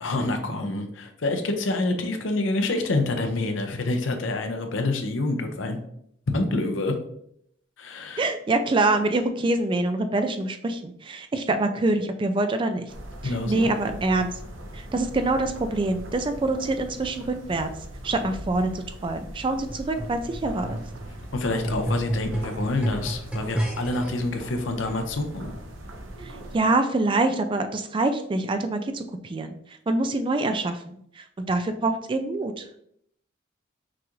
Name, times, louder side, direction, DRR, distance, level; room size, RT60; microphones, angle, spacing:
voice 1, 0.0-5.8 6.3-6.9 7.8-8.2 13.2-13.7 21.3-25.5, left 2 dB, 75° left, 6 dB, 0.7 m, -27 dB
voice 2, 8.2-12.9 13.2-14.3 14.7-17.7 18.0-20.8 26.2-32.8, right 2 dB, 25° right, 8 dB, 0.3 m, -25 dB
sound 1, 12.9-26.6, right 1 dB, 85° right, 0.8 m, -40 dB
sound 2, 19.7-24.1 24.9-25.0, right 1 dB, 5° right, 0.9 m, -31 dB
5.9 x 2.4 x 3.0 m, 0.71 s
head